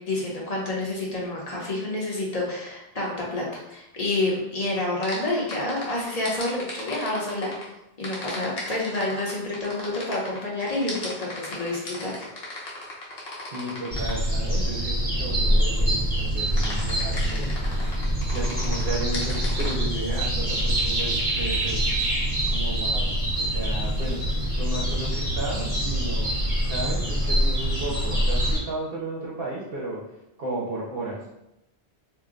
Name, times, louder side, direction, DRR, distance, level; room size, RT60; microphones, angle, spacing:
voice 1, 0.1-7.5 8.0-12.3, left 2 dB, 40° left, -3 dB, 0.8 m, -28 dB
sound 1, 5.0-7.6 8.0-14.3 16.6-19.7, left 2 dB, 70° left, 1.0 m, -36 dB
voice 2, 13.5-17.6 18.0-21.8 22.2-22.3 22.5-26.4 26.6-30.0 30.4-31.3, right 2 dB, 70° right, -4 dB, 0.9 m, -34 dB
sound 2, 13.9-28.6, right 1 dB, 25° right, 1.0 m, -25 dB
2.6 x 2.1 x 3.7 m, 0.87 s
omnidirectional pair, 1.0 m